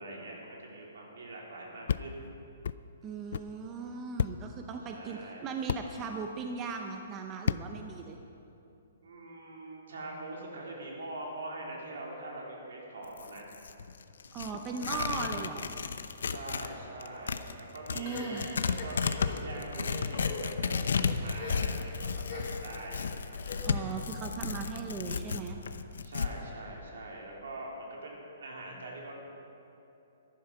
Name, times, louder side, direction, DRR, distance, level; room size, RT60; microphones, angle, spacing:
voice 1, 0.0-2.3 4.9-5.5 9.0-13.5 16.2-23.4 26.0-29.2, right 2 dB, 75° right, -2 dB, 3.7 m, -43 dB
sound 1, 1.9-2.0 2.6-2.8 3.3-3.5 4.2-4.4 5.7-5.8 7.5-7.6, left 8 dB, 60° left, 0.3 m, -30 dB
voice 2, 3.0-8.2 14.3-15.8 17.9-18.5 23.6-25.6, right 5 dB, 15° right, 4 dB, 0.6 m, -38 dB
Tearing, 13.0-16.7 17.0-26.3, left 5 dB, 85° left, 0.7 m, -33 dB
sound 2, 18.0-19.4 20.0-20.4 21.3-21.8 22.2-22.7 23.4-23.9, left 4 dB, 35° left, 2.2 m, -42 dB
14.0 x 11.0 x 5.9 m, 2.8 s
hypercardioid pair, 170°, 0 cm